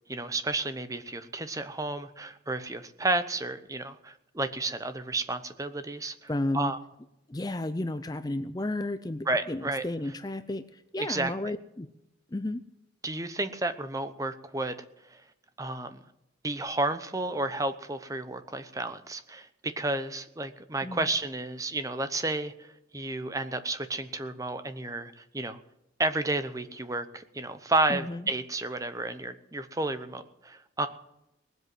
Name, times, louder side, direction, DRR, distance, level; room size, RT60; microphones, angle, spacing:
voice 1, 0.1-6.8 9.3-9.8 11.0-11.5 13.0-14.8 15.1-15.2 15.6-16.0 16.4-25.6 26.0-30.9, right 2 dB, 15° right, 10 dB, 0.8 m, -32 dB
voice 2, 6.0-6.7 7.3-11.9 12.3-12.6 20.8-21.1 27.9-28.2, left 1 dB, 20° left, 11 dB, 0.5 m, -33 dB
19.5 x 8.0 x 7.8 m, 0.87 s
head